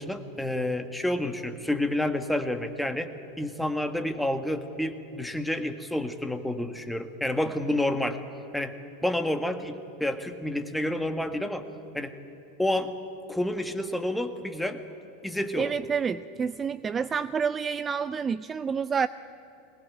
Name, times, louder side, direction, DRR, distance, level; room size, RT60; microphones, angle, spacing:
voice 1, 0.0-3.1 3.4-8.2 8.5-8.7 9.0-11.7 11.9-12.1 12.6-12.9 13.3-14.8 15.2-15.7, left 1 dB, 5° left, 8 dB, 1.7 m, -29 dB
voice 2, 15.6-19.1, right 6 dB, 25° right, 16 dB, 0.5 m, -28 dB
22.0 x 19.0 x 8.8 m, 3.0 s
hypercardioid pair, 95°, 0 cm